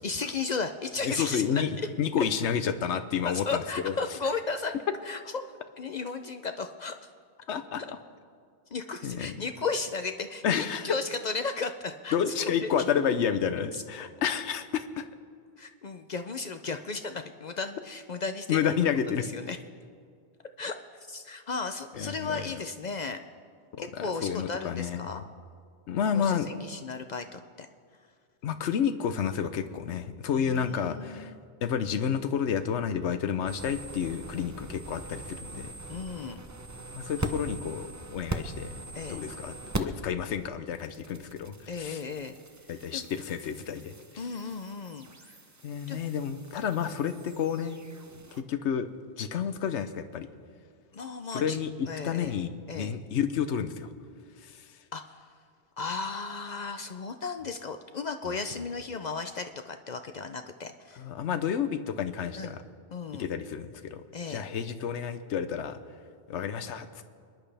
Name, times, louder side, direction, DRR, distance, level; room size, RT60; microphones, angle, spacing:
voice 1, 0.0-1.6 3.2-4.7 5.0-5.4 5.8-7.1 8.7-12.7 13.7-14.1 15.6-18.7 19.2-19.6 20.6-20.8 21.1-23.2 23.8-25.2 26.1-27.7 30.3-31.3 35.9-36.4 37.2-37.3 38.9-39.2 41.7-42.4 42.9-43.1 44.2-45.4 45.9-46.0 50.9-51.6 51.9-52.4 52.7-52.9 54.9-55.3 55.8-61.0 62.3-62.6 62.9-63.3 64.1-64.5, left 4 dB, 50° left, 7 dB, 0.6 m, -35 dB
voice 2, 1.0-3.9 7.5-7.8 9.0-9.4 10.4-10.9 12.1-15.1 18.5-19.2 22.0-22.6 23.8-25.2 25.9-26.5 28.4-31.3 31.6-35.7 36.9-38.7 39.1-42.0 42.7-44.2 45.6-47.8 48.3-48.9 49.2-50.3 51.3-53.9 54.4-54.7 58.3-58.4 61.0-62.6 63.2-65.8 66.3-67.0, left 8 dB, 80° left, 11 dB, 1.1 m, -30 dB
sound 1, 33.5-40.1 40.4-48.4, right 2 dB, 20° right, 0.5 m, -41 dB
28.5 x 11.0 x 3.4 m, 2.1 s
omnidirectional pair, 1.1 m